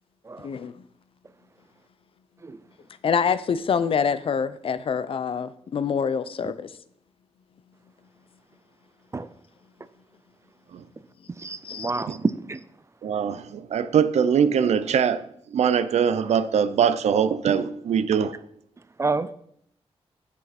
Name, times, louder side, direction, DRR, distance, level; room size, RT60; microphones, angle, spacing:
voice 1, 0.4-0.7 3.0-6.7 11.6-11.9, left 6 dB, 55° left, 0.5 m, -26 dB
voice 2, 11.4-12.6 19.0-19.3, right 3 dB, 25° right, 0.4 m, -28 dB
voice 3, 13.0-18.3, right 7 dB, 85° right, 0.5 m, -22 dB
9.1 x 7.1 x 4.2 m
wide cardioid pair, 130°, 11 cm